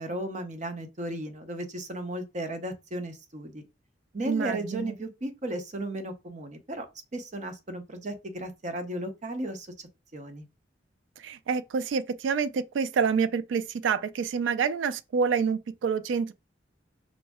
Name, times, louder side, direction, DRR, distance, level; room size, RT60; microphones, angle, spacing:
voice 1, 0.0-3.6 4.1-6.9 7.1-10.5, right 1 dB, 40° right, 0.7 m, -35 dB
voice 2, 4.3-4.9 11.2-16.3, right 6 dB, 85° right, 0.3 m, -27 dB
5.1 x 2.0 x 3.5 m
head